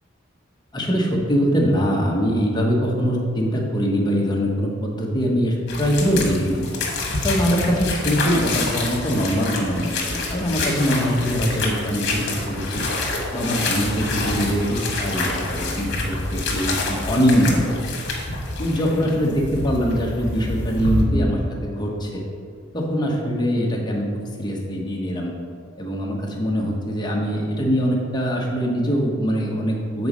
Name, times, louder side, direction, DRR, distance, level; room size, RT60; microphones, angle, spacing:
voice 1, 0.7-6.6 7.2-12.8 13.3-18.0 18.6-22.2 22.7-24.0 24.4-25.3 25.8-30.1, equal, 20° left, -1 dB, 1.0 m, -22 dB
sound 1, 5.7-21.0, left 2 dB, 55° left, 1.3 m, -27 dB
7.8 x 4.1 x 5.0 m, 2.2 s
head